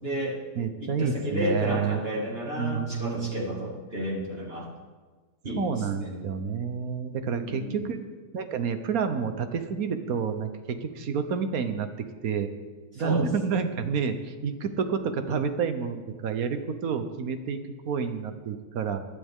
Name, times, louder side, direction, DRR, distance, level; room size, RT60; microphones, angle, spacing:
voice 1, 0.0-0.4 0.8-4.7 5.4-6.4 7.3-7.9 12.9-13.3, equal, 35° right, -3 dB, 2.5 m, -32 dB
voice 2, 0.6-2.1 2.6-3.5 5.5-8.0 8.3-11.9 12.2-12.5 12.9-17.6 17.8-19.0, right 6 dB, 60° right, 9 dB, 1.3 m, -29 dB
19.5 x 12.0 x 3.7 m, 1.4 s
omnidirectional pair, 1.8 m